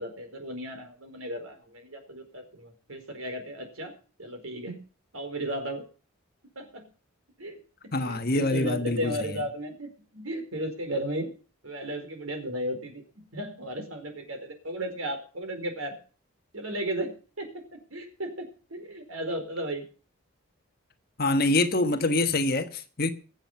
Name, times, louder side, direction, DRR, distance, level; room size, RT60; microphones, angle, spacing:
voice 1, 0.0-4.8 5.1-5.8 6.5-6.9 7.4-11.3 11.6-16.0 16.5-19.8, right 1 dB, 75° right, 4.5 m, -35 dB
voice 2, 7.9-9.3 21.2-23.1, left 2 dB, 45° left, 1.4 m, -25 dB
22.5 x 7.5 x 5.6 m
head